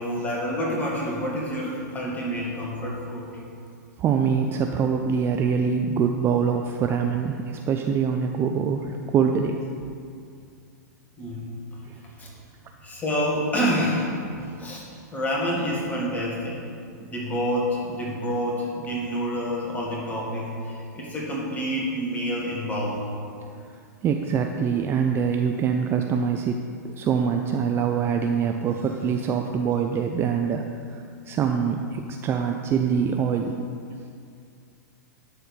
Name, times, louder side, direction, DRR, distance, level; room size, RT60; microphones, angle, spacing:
voice 1, 0.0-3.3 11.2-11.5 12.2-12.3 12.8-14.2 14.6-14.9 15.1-16.6 17.1-23.1, equal, 15° left, -4 dB, 2.2 m, -28 dB
voice 2, 4.0-9.6 11.8-12.0 14.4-14.7 17.0-17.1 24.0-33.6 33.9-34.0, right 6 dB, 25° right, 4 dB, 0.4 m, -24 dB
11.5 x 4.3 x 5.6 m, 2.3 s
hypercardioid pair, 125°, 10 cm